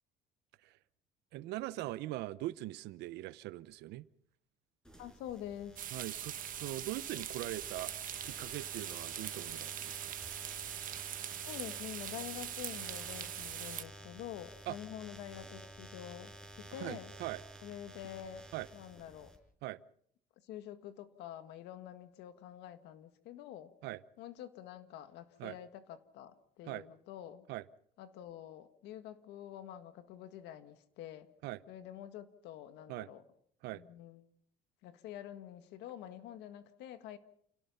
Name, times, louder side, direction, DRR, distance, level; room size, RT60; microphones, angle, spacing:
voice 1, 1.3-4.0 5.9-7.9 8.2-10.2 14.7-14.8 16.7-17.4 18.5-18.7 19.6-19.8 23.8-24.0 25.4-25.6 26.6-26.9 27.5-27.6 31.4-31.6 32.9-33.1 33.6-33.8, right 17 dB, 90° right, 17 dB, 0.9 m, -41 dB
sound 1, 4.8-19.4, right 1 dB, 5° left, 5.5 m, -52 dB
voice 2, 5.0-5.8 11.5-17.1 17.6-18.4 18.7-19.3 20.4-23.7 24.2-27.4 28.0-31.3 31.7-33.2 33.7-34.2 34.8-37.2, left 11 dB, 90° left, 10 dB, 1.8 m, -47 dB
sound 2, 5.8-13.8, right 10 dB, 55° right, 1.3 m, -42 dB
29.0 x 17.5 x 5.6 m, 0.65 s
cardioid pair, 110°, 17 cm